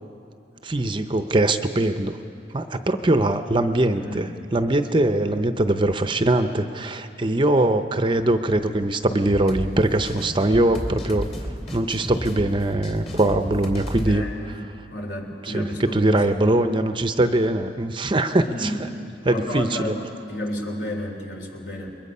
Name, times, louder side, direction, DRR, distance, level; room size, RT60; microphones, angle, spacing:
voice 1, 0.6-2.1 2.5-11.3 11.7-14.3 15.4-18.7 19.2-19.9, right 1 dB, 25° right, 8 dB, 0.7 m, -22 dB
voice 2, 4.0-4.3 14.1-14.6 14.9-16.5 18.4-18.8 19.2-20.0 20.3-22.0, equal, 65° left, 2 dB, 3.4 m, -31 dB
sound 1, 9.3-14.2, equal, 35° left, 2.8 m, -32 dB
29.0 x 22.0 x 5.5 m, 2.6 s
head